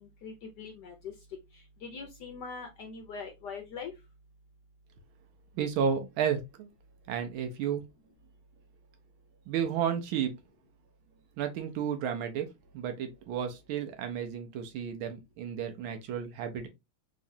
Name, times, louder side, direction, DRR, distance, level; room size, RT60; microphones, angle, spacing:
voice 1, 0.2-1.1 1.8-3.9, left 5 dB, 70° left, 1.0 m, -42 dB
voice 2, 5.6-6.7 7.1-7.8 9.5-10.3 11.4-12.5 12.7-16.7, right 8 dB, 75° right, 1.4 m, -32 dB
3.6 x 3.1 x 2.6 m
omnidirectional pair, 2.4 m